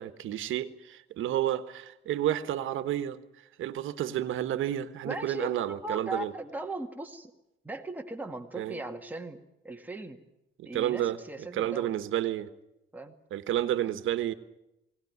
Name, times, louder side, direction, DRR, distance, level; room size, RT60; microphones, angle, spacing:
voice 1, 0.0-3.2 3.6-6.3 8.6-8.8 10.6-11.2 11.5-12.5 13.3-14.3, right 12 dB, 70° right, 11 dB, 1.4 m, -30 dB
voice 2, 5.0-7.3 7.6-9.4 9.6-10.2 10.7-12.0 12.9-13.2 13.9-14.0, right 2 dB, 10° right, 3 dB, 2.0 m, -38 dB
21.0 x 18.0 x 9.6 m, 0.90 s
cardioid pair, 125°, 21 cm